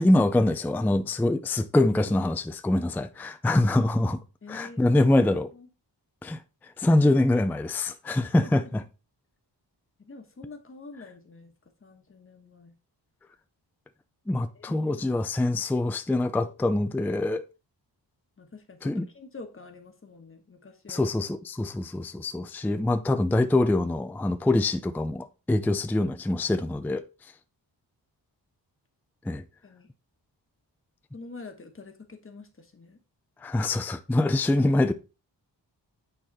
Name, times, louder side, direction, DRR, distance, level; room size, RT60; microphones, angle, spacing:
voice 1, 0.0-4.2 4.5-5.5 6.2-8.8 14.3-17.4 18.8-19.1 20.9-27.0 29.3-29.4 33.4-34.9, left 2 dB, 5° left, 0.4 m, -24 dB
voice 2, 4.4-5.7 8.4-8.7 10.0-11.5 11.8-12.8 14.5-15.0 18.4-21.1 29.6-29.9 31.1-33.0, left 3 dB, 30° left, 1.3 m, -46 dB
9.0 x 4.1 x 4.2 m
wide cardioid pair, 170°, 43 cm